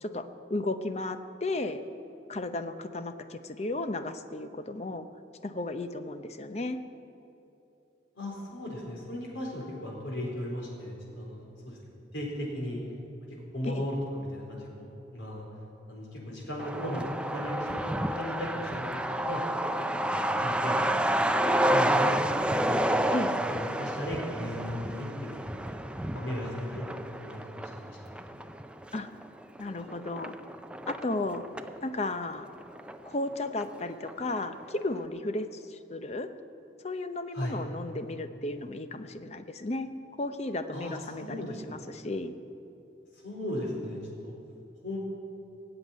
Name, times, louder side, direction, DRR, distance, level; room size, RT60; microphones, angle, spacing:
voice 1, 0.0-1.8 2.3-5.1 5.4-6.8 13.7-13.9 23.1-23.4 28.9-29.1 29.6-30.4 30.9-31.4 31.8-32.5 33.0-36.3 36.8-39.9 40.2-42.3, left 2 dB, 35° left, 9 dB, 0.7 m, -34 dB
voice 2, 8.2-11.8 12.1-12.8 13.3-15.5 15.9-17.1 17.3-19.4 19.8-20.9 21.5-25.4 25.9-27.4 27.8-28.4 37.3-37.6 40.7-41.8 43.2-44.3 44.8-45.0, equal, 85° left, -2 dB, 4.4 m, -37 dB
Truck, 16.6-31.8 32.1-32.2 32.4-33.3 33.6-33.7 34.1-34.4, right 1 dB, 5° right, 0.4 m, -30 dB
18.5 x 8.0 x 9.1 m, 2.8 s
head